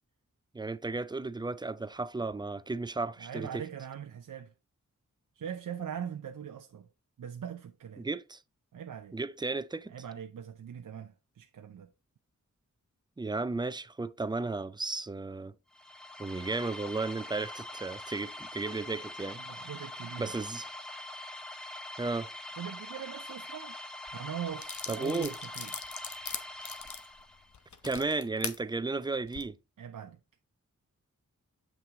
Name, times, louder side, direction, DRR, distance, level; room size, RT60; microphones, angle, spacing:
voice 1, 0.5-3.6 8.0-8.4 9.1-9.9 13.2-15.5 16.2-19.4 20.2-20.7 22.0-22.3 24.9-25.3 27.8-29.6, right 3 dB, 15° right, 0.4 m, -34 dB
voice 2, 3.2-4.5 5.4-6.9 7.2-8.1 8.7-9.2 9.9-11.9 19.3-20.4 22.6-23.7 24.1-25.9 29.8-30.2, right 8 dB, 75° right, 0.6 m, -41 dB
sound 1, 15.7-27.6, left 1 dB, ahead, 1.1 m, -44 dB
sound 2, 24.1-24.2 24.6-28.6 29.2-29.4, left 6 dB, 65° left, 1.0 m, -40 dB
7.6 x 5.9 x 3.6 m
wide cardioid pair, 95°, 32 cm